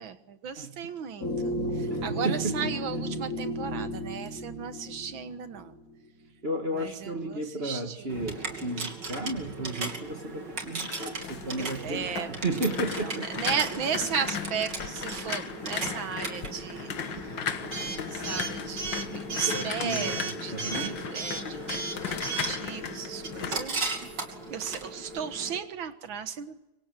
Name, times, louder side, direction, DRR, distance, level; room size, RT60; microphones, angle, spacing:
voice 1, 0.0-5.7 6.7-8.0 11.2-11.3 11.6-12.3 12.9-17.4 17.8-21.8 22.1-23.9 24.5-26.6, right 7 dB, 90° right, 10 dB, 2.2 m, -35 dB
sound 1, 1.2-5.8, equal, 45° left, 3.8 m, -33 dB
voice 2, 1.9-2.6 6.4-13.3 19.5-21.0, right 1 dB, 35° right, 5 dB, 1.8 m, -33 dB
Coin (dropping) / Alarm, 8.1-25.6, right 4 dB, 60° right, 3.4 m, -36 dB
sound 2, 10.5-24.5 24.8-25.2, left 8 dB, 75° left, 2.0 m, -37 dB
25.5 x 24.5 x 7.6 m, 0.99 s
omnidirectional pair, 2.1 m